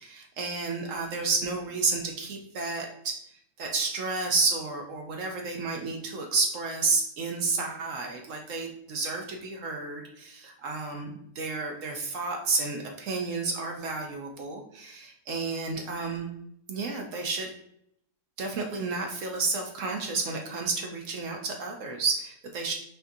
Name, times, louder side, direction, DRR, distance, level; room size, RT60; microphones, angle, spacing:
voice 1, 0.0-3.1 3.6-16.3 16.7-17.5 18.4-22.7, right 4 dB, 65° right, 2 dB, 0.8 m, -31 dB
5.7 x 2.6 x 2.6 m, 0.73 s
omnidirectional pair, 1.7 m